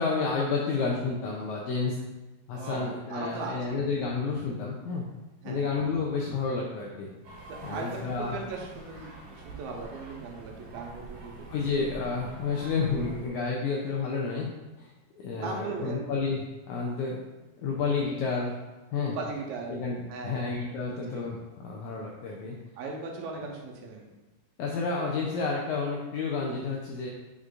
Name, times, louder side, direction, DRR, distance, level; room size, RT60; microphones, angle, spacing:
voice 1, 0.0-1.9 2.5-5.0 5.4-7.1 7.6-8.4 11.5-14.5 14.8-14.9 15.2-16.4 16.7-17.2 17.6-18.6 18.9-19.2 19.7-22.5 24.6-27.1, left 4 dB, 85° left, -2 dB, 1.7 m, -30 dB
voice 2, 2.5-3.9 5.4-5.6 7.5-11.5 15.3-16.1 19.0-19.7 20.1-20.4 20.9-21.2 22.8-24.1, right 4 dB, 90° right, 0 dB, 2.6 m, -38 dB
sound 1, 7.2-13.3, right 3 dB, 60° right, 2.8 m, -46 dB
8.2 x 5.1 x 2.5 m, 1.1 s
omnidirectional pair, 4.1 m